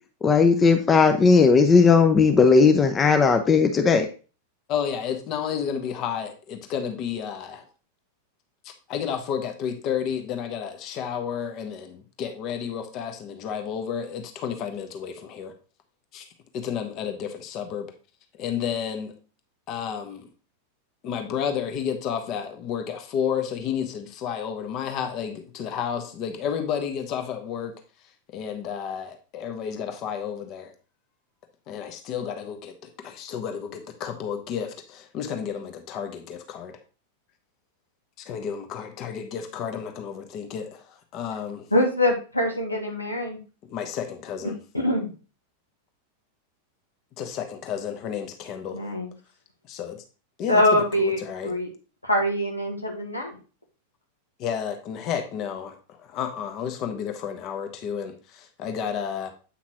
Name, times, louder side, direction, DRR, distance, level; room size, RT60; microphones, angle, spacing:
voice 1, 0.2-4.1, left 5 dB, 20° left, 0.7 m, -17 dB
voice 2, 4.7-7.7 8.6-15.5 16.1-16.2 16.5-17.9 18.4-19.1 19.7-20.3 21.0-27.7 28.3-30.7 31.7-36.8 38.2-41.7 43.6-44.6 47.2-48.8 49.6-50.0 50.4-51.5 54.4-59.3, left 8 dB, 40° left, 1.2 m, -31 dB
voice 3, 41.7-43.4 44.7-45.1 48.7-49.1 50.5-51.2 51.4-51.7 52.0-53.4, left 1 dB, 85° left, 1.4 m, -23 dB
8.5 x 5.7 x 2.9 m
figure-of-eight pair, 90°, 0 cm